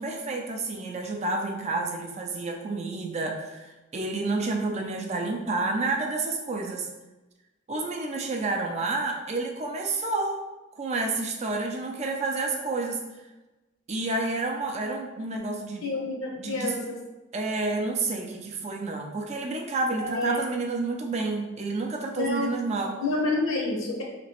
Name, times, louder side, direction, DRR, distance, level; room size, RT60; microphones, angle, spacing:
voice 1, 0.0-6.9 7.7-10.4 10.8-13.1 13.9-15.9 16.4-16.8 17.3-23.0, right 3 dB, 30° right, 1 dB, 0.3 m, -29 dB
voice 2, 15.8-17.0 20.0-20.4 22.2-22.5 23.0-24.0, left 2 dB, 80° left, 0 dB, 0.8 m, -28 dB
3.0 x 2.9 x 2.9 m, 1.1 s
head